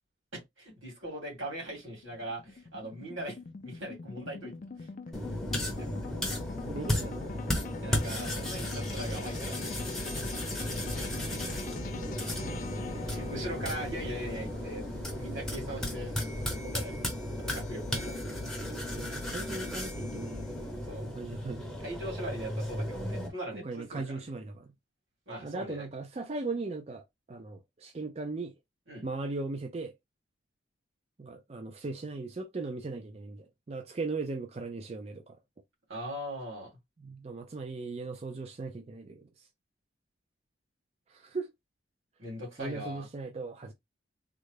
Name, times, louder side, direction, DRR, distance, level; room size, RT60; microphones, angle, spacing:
voice 1, 0.3-4.9 5.8-5.9 7.8-10.4 10.9-11.0 12.9-14.9 15.1-16.1 16.6-17.0 17.4-18.2 20.8-21.1 21.8-24.2 25.3-25.9 28.9-29.0 35.9-36.7 42.2-43.1, right 1 dB, 85° right, 2.3 m, -40 dB
sound 1, 1.0-15.3, left 4 dB, 40° left, 0.4 m, -43 dB
sound 2, 5.1-23.3, left 1 dB, ahead, 0.7 m, -35 dB
voice 2, 6.7-7.3 11.4-11.6 12.0-12.7 18.6-20.7 21.1-21.7 23.5-24.7 25.4-28.5 29.0-29.9 31.2-35.4 37.0-39.3 41.1-41.5 42.6-43.7, right 3 dB, 30° right, 0.4 m, -38 dB
sound 3, 10.7-16.5, equal, 55° right, 1.5 m, -45 dB
3.7 x 2.1 x 3.2 m
head